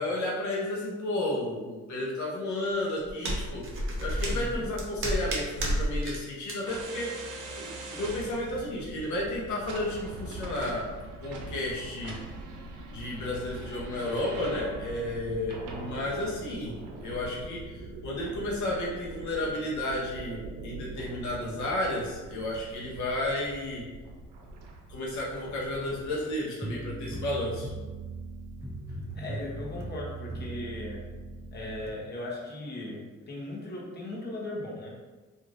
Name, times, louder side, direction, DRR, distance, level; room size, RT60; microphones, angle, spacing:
voice 1, 0.0-7.1 7.6-10.9 11.2-12.2 12.9-16.8 17.0-23.9 24.9-27.7, left 1 dB, 70° left, -4 dB, 0.7 m, -32 dB
sound 1, 2.6-6.2 6.4-6.6, equal, 45° right, 0.7 m, -31 dB
voice 2, 4.3-4.7 28.9-31.0 31.5-35.0, left 1 dB, 35° left, -4 dB, 0.9 m, -38 dB
sound 2, 6.7-26.4, right 2 dB, 80° right, 0.6 m, -42 dB
sound 3, 26.6-31.9, right 2 dB, 10° right, 0.5 m, -39 dB
3.1 x 2.5 x 2.5 m, 1.3 s
cardioid pair, 90°, 30 cm